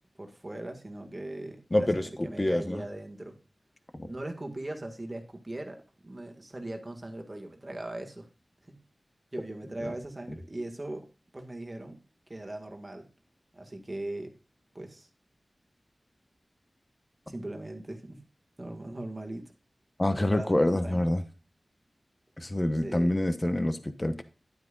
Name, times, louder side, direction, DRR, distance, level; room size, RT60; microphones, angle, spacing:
voice 1, 0.2-3.4 4.1-8.3 8.7-8.8 9.3-11.1 11.3-12.0 12.3-13.1 13.5-14.3 14.7-15.1 17.3-18.2 18.6-19.4 20.1-21.1 22.8-23.2, right 1 dB, 30° right, 1.9 m, -39 dB
voice 2, 1.7-2.8 4.0-4.1 9.8-9.9 20.0-21.2 22.4-24.2, left 1 dB, 30° left, 1.1 m, -27 dB
10.5 x 9.3 x 2.5 m
wide cardioid pair, 60°, 0 cm